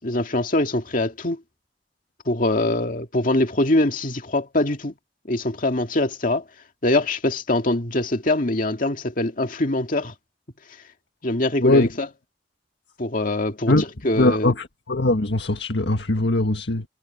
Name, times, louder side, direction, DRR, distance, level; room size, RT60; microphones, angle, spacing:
voice 1, 0.0-1.4 2.3-4.9 5.3-6.4 6.8-10.1 11.2-12.1 13.0-14.5, left 1 dB, 50° left, 2.1 m, -23 dB
voice 2, 14.2-16.9, left 2 dB, 80° left, 1.7 m, -21 dB
head